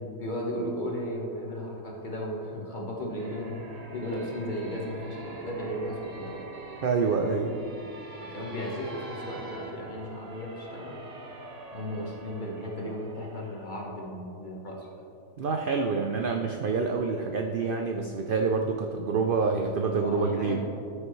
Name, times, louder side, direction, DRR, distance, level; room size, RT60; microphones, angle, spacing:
voice 1, 0.2-3.6 3.9-6.4 8.2-11.0 11.7-14.9 20.0-20.6, equal, 35° left, -2 dB, 1.3 m, -35 dB
sound 1, 3.2-13.6, right 3 dB, 35° right, 0.8 m, -44 dB
voice 2, 6.8-7.6 15.4-20.6, right 4 dB, 70° right, 3 dB, 0.5 m, -27 dB
13.5 x 6.6 x 3.1 m, 2.6 s
omnidirectional pair, 1.5 m